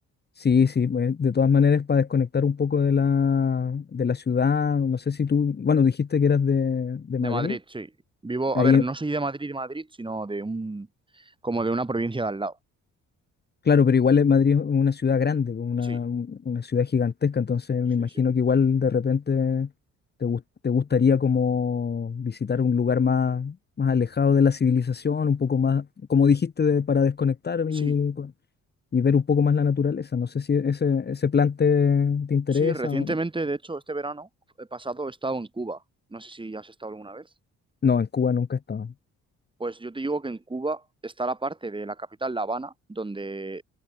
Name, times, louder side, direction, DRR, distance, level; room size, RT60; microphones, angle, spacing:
voice 1, 0.4-7.6 8.5-8.8 13.6-19.7 20.2-28.3 28.9-33.1 37.8-38.9, left 6 dB, 35° left, 1.3 m, -22 dB
voice 2, 7.2-7.9 8.2-10.9 11.1-12.6 15.8-16.0 27.7-28.0 32.5-34.3 34.6-35.8 36.1-37.3 39.6-43.6, right 2 dB, 15° right, 2.6 m, -31 dB
cardioid pair, 90°, 30 cm